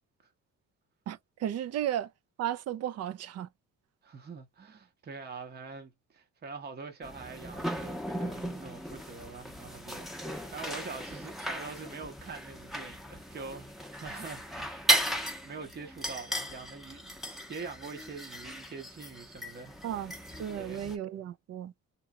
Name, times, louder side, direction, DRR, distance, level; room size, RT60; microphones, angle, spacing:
voice 1, 1.1-2.1 2.4-3.5 19.8-20.1 20.4-21.7, right 11 dB, 55° right, 0.5 m, -34 dB
voice 2, 4.0-15.1 15.4-19.8 20.6-20.9, right 4 dB, 35° right, 0.8 m, -44 dB
sound 1, 7.0-21.0, equal, ahead, 0.7 m, -36 dB
2.9 x 2.8 x 2.2 m
cardioid pair, 90°, 30 cm